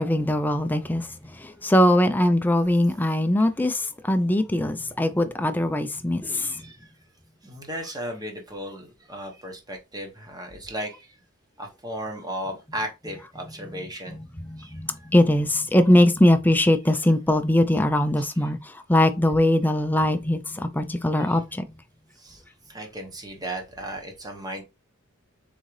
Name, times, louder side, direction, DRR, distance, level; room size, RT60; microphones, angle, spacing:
voice 1, 0.0-6.7 13.7-21.7, left 1 dB, 10° left, 0.4 m, -22 dB
voice 2, 6.3-6.9 7.4-11.2 11.6-14.2 14.6-15.1 18.2-18.3 21.2-21.4 22.2-24.6, right 1 dB, 20° right, 1.0 m, -36 dB
3.9 x 3.7 x 3.1 m
head